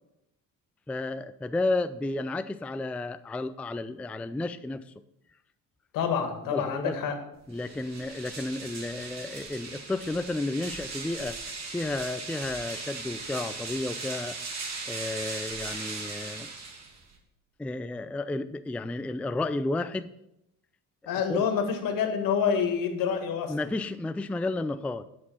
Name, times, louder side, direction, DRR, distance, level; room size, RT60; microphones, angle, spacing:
voice 1, 0.9-4.8 6.5-7.0 7.5-16.5 17.6-20.1 21.3-21.5 23.5-25.0, left 2 dB, 5° left, 11 dB, 0.3 m, -32 dB
voice 2, 5.9-7.2 21.1-23.5, left 7 dB, 70° left, 6 dB, 1.9 m, -27 dB
sound 1, 7.5-17.2, right 4 dB, 50° right, 2.6 m, -38 dB
10.5 x 6.2 x 5.5 m, 0.82 s
cardioid pair, 95°, 34 cm